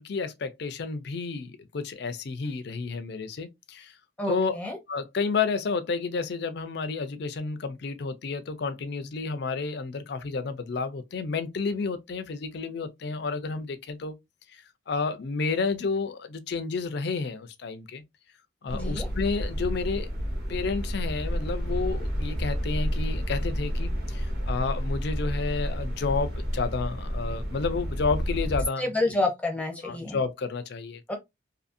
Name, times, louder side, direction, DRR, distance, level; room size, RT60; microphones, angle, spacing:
voice 1, 0.0-3.9 4.3-4.6 4.9-14.1 14.5-14.6 14.9-18.0 18.6-20.1 20.5-28.9 29.8-31.0, left 4 dB, 55° left, 0.4 m, -31 dB
voice 2, 4.2-4.8 18.7-19.1 28.8-30.2 31.1-31.2, left 2 dB, 5° left, 0.6 m, -28 dB
sound 1, 18.7-28.6, equal, 55° right, 1.1 m, -30 dB
2.7 x 2.6 x 2.5 m
head